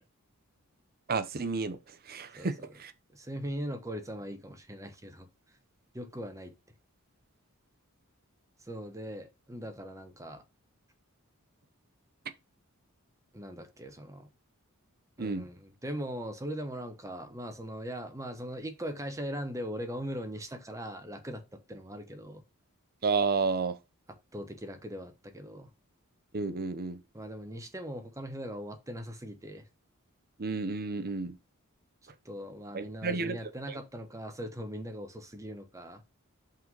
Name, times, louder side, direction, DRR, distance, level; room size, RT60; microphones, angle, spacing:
voice 1, 1.1-2.9 15.2-15.5 23.0-23.8 26.3-27.0 30.4-31.4 32.7-33.4 33.7-33.8, right 4 dB, 45° right, 0.8 m, -31 dB
voice 2, 2.3-2.7 3.1-5.3 5.9-6.5 8.6-10.4 13.3-14.3 15.2-22.4 24.3-25.7 27.1-29.7 32.2-36.0, equal, 15° right, 1.1 m, -40 dB
5.5 x 3.9 x 5.3 m
head